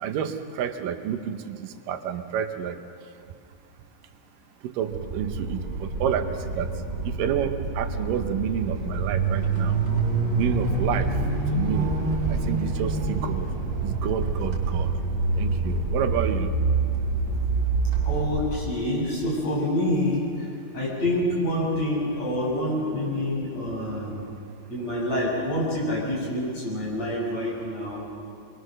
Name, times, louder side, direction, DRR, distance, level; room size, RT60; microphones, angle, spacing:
voice 1, 0.0-2.8 4.6-6.3 6.5-6.7 7.0-9.7 10.4-11.1 11.5-11.9 12.3-13.5 13.8-14.9 15.4-16.5, right 9 dB, 85° right, 8 dB, 2.7 m, -29 dB
sound 1, 4.9-18.6, right 3 dB, 40° right, 4.3 m, -26 dB
voice 2, 18.1-20.5 20.7-24.2 24.7-28.1, left 1 dB, 50° left, -5 dB, 7.8 m, -27 dB
25.0 x 22.0 x 6.5 m, 2.3 s
omnidirectional pair, 3.8 m